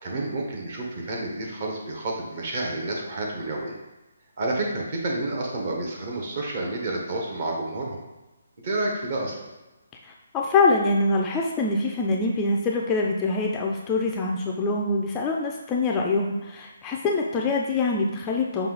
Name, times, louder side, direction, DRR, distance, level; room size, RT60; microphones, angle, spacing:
voice 1, 0.0-3.8 4.4-8.0 8.6-9.4, right 2 dB, 40° right, -1 dB, 1.0 m, -29 dB
voice 2, 10.0-18.7, left 3 dB, 15° left, 0 dB, 0.3 m, -24 dB
5.5 x 2.3 x 3.9 m, 1.1 s
hypercardioid pair, 160°, 0 cm